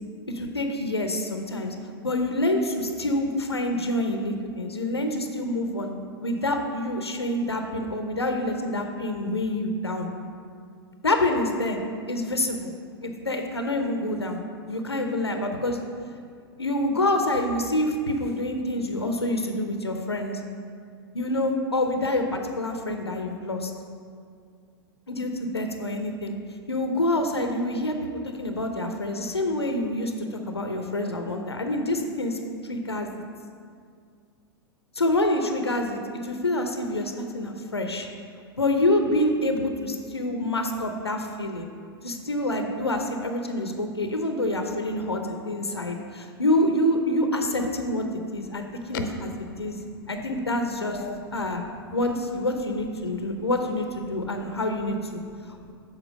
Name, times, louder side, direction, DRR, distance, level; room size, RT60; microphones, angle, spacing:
voice 1, 0.3-1.7 2.0-5.9 6.2-10.1 11.0-11.8 12.1-12.7 13.0-14.4 14.7-15.8 16.6-20.4 21.1-23.7 25.1-26.3 26.7-28.1 28.3-33.1 35.0-38.1 38.6-41.7 42.0-48.0 48.3-49.1 49.6-49.8 50.1-51.0 51.3-51.6 51.9-55.2, left 1 dB, 90° left, 5 dB, 0.7 m, -27 dB
voice 2, 48.4-49.0 49.5-50.2 50.9-51.7 53.0-53.5 54.1-54.5 55.3-55.7, left 5 dB, 55° left, 6 dB, 0.7 m, -41 dB
7.4 x 4.5 x 6.0 m, 2.2 s
figure-of-eight pair, 100°, 13 cm